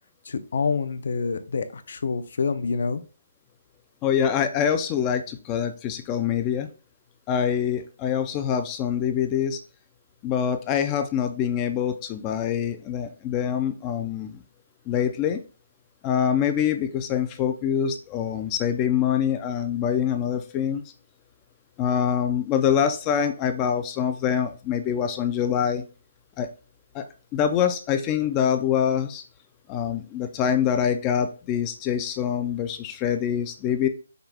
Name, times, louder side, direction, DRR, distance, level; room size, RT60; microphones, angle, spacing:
voice 1, 0.3-3.0, left 5 dB, 55° left, 10 dB, 0.6 m, -27 dB
voice 2, 4.0-6.7 7.3-9.6 10.2-14.4 14.9-15.4 16.0-20.8 21.8-25.8 26.4-26.5 26.9-27.1 27.3-29.2 29.7-33.9, left 8 dB, 15° left, 8 dB, 0.3 m, -25 dB
5.7 x 2.3 x 3.4 m, 0.34 s
hypercardioid pair, 175°, 0 cm